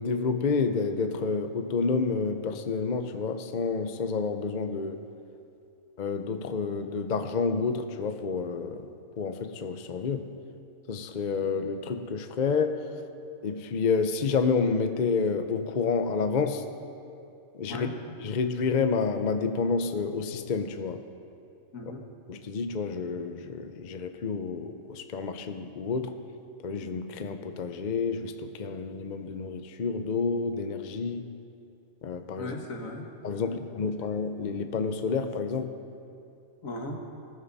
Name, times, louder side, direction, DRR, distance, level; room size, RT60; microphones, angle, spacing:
voice 1, 0.0-5.0 6.0-8.9 9.2-10.3 10.9-12.8 13.4-16.6 17.6-17.9 18.2-21.0 22.3-26.1 26.6-31.2 32.0-32.5 33.2-35.7, left 5 dB, 45° left, 8 dB, 0.7 m, -29 dB
voice 2, 32.4-33.1 33.4-33.7 36.6-37.0, left 2 dB, 80° left, 1 dB, 2.0 m, -37 dB
20.5 x 14.5 x 4.1 m, 2.7 s
omnidirectional pair, 1.4 m